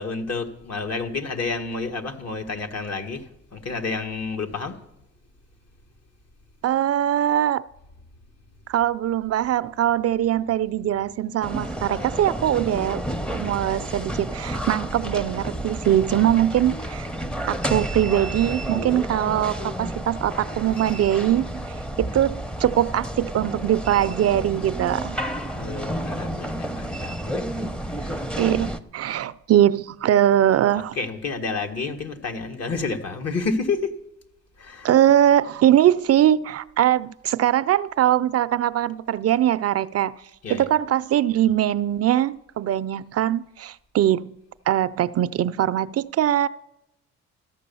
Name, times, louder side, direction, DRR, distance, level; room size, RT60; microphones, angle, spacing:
voice 1, 0.0-3.2 3.5-4.7 20.7-20.8 25.5-27.7 28.0-28.2 30.9-33.9 34.6-34.9 40.4-40.7, left 4 dB, 55° left, 1.7 m, -30 dB
voice 2, 6.6-7.7 8.7-13.0 13.3-17.1 17.5-25.2 28.4-31.0 34.8-40.2 40.5-44.3 44.7-46.5, right 11 dB, 55° right, 0.5 m, -21 dB
sound 1, 11.4-28.8, right 1 dB, 5° left, 0.7 m, -31 dB
14.0 x 9.3 x 6.9 m
cardioid pair, 90°, 30 cm